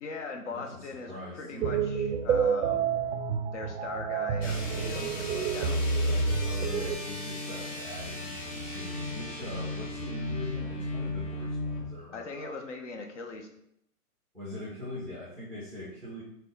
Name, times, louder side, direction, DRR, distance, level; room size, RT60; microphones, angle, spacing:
voice 1, 0.0-2.9 3.5-6.2 12.1-13.5, left 4 dB, 50° left, 4 dB, 0.6 m, -40 dB
voice 2, 1.1-1.8 6.4-12.6 14.3-16.2, left 1 dB, 5° left, -10 dB, 0.5 m, -42 dB
sound 1, 1.6-6.9, right 5 dB, 60° right, 0.5 m, -29 dB
sound 2, 4.4-11.9, left 2 dB, 30° left, 1.1 m, -36 dB
3.5 x 2.2 x 3.8 m, 0.75 s
hypercardioid pair, 145°, 46 cm